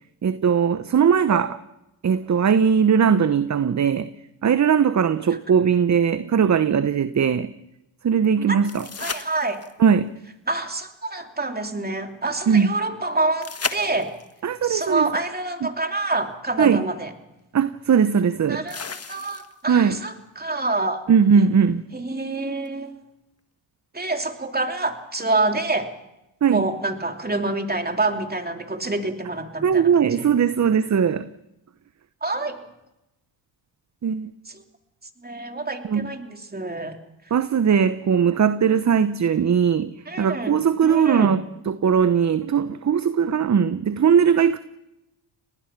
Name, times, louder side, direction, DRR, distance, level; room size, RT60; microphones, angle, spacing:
voice 1, 0.2-1.6 2.0-4.1 4.4-7.5 8.0-8.9 9.8-10.2 12.5-12.7 14.4-15.1 15.6-15.7 16.6-16.9 17.5-18.7 19.7-20.0 21.1-21.8 26.4-26.7 29.6-31.3 34.0-34.3 35.8-36.1 37.3-44.6, right 7 dB, 35° right, 0.9 m, -19 dB
sound 1, 8.6-9.9 13.4-14.4 16.3-16.4 18.7-19.7 22.7-22.8, left 5 dB, 30° left, 1.6 m, -33 dB
voice 2, 9.0-9.6 10.5-14.1 14.6-17.1 18.5-21.0 21.4-21.5 21.9-22.9 23.9-25.9 26.5-29.9 30.2-30.3 32.2-32.6 34.5-34.6 35.2-37.0 40.1-40.5 40.8-41.3, right 2 dB, 20° right, 3.0 m, -27 dB
26.5 x 19.5 x 6.0 m
supercardioid pair, 65°, 48 cm